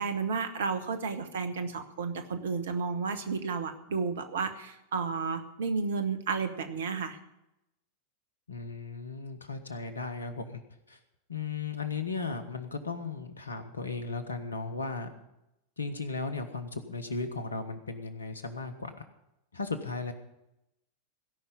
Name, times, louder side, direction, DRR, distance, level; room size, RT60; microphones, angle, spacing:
voice 1, 0.0-7.2, right 5 dB, 60° right, 9 dB, 1.3 m, -32 dB
voice 2, 8.5-10.6 10.9-11.0 11.3-15.1 15.8-19.0 19.5-20.1, left 4 dB, 75° left, 11 dB, 1.3 m, -36 dB
17.0 x 5.8 x 9.7 m, 0.88 s
figure-of-eight pair, 90°, 0 cm